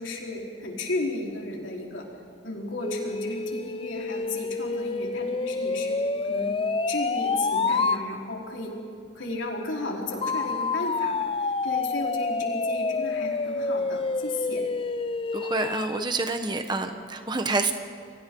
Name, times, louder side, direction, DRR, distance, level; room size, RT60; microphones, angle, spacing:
voice 1, 0.0-2.0 2.4-6.6 6.9-8.7 9.1-14.6, left 2 dB, 85° left, -2 dB, 4.4 m, -34 dB
sound 1, 2.8-8.0 10.2-16.1, left 3 dB, 30° left, 0.5 m, -28 dB
voice 2, 15.3-17.7, right 3 dB, 25° right, 6 dB, 1.3 m, -28 dB
29.5 x 24.0 x 4.0 m, 2.4 s
head